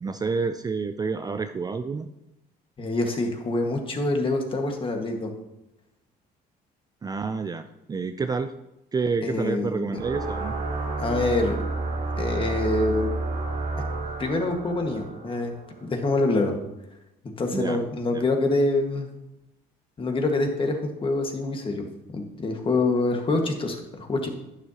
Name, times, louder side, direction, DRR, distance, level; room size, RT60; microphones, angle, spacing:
voice 1, 0.0-2.1 7.0-8.5 8.9-10.6 17.5-17.8 18.1-18.2, right 4 dB, 20° right, 9 dB, 0.4 m, -29 dB
voice 2, 2.8-5.3 9.2-9.9 11.0-11.6 12.2-13.1 14.2-15.5 15.8-16.6 17.4-19.1 20.0-21.8 22.1-24.3, left 2 dB, 30° left, 3 dB, 1.7 m, -25 dB
sound 1, 9.9-16.0, right 3 dB, 80° right, 2.6 m, -30 dB
11.0 x 9.7 x 2.9 m, 0.91 s
cardioid pair, 110°, 17 cm